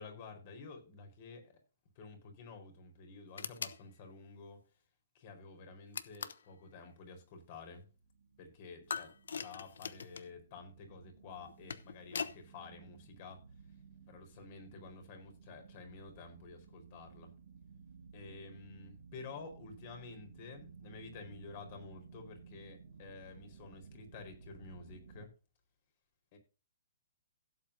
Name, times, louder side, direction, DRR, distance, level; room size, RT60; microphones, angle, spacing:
voice 1, 0.0-1.5 2.0-4.6 5.1-7.9 8.4-13.4 14.1-17.3 18.1-25.3 26.3-26.4, left 4 dB, 45° left, 5 dB, 4.4 m, -51 dB
sound 1, 3.4-3.8 5.9-6.5 8.9-10.3 11.4-12.4, left 6 dB, 75° left, 0.9 m, -41 dB
sound 2, 7.7-25.3, right 5 dB, 65° right, 2.3 m, -57 dB
16.5 x 8.0 x 2.7 m, 0.32 s
hypercardioid pair, 135°, 0 cm